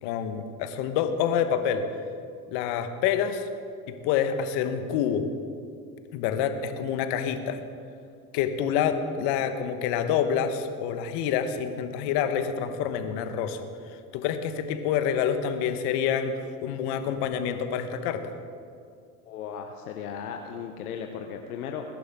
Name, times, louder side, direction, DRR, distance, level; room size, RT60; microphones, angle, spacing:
voice 1, 0.0-1.8 2.5-3.5 3.9-5.3 6.1-7.6 8.3-13.6 14.1-16.3 16.6-18.3, left 8 dB, 65° left, 8 dB, 1.3 m, -27 dB
voice 2, 19.3-21.8, left 7 dB, 85° left, 4 dB, 0.9 m, -36 dB
21.0 x 11.0 x 3.7 m, 2.3 s
hypercardioid pair, 70°, 44 cm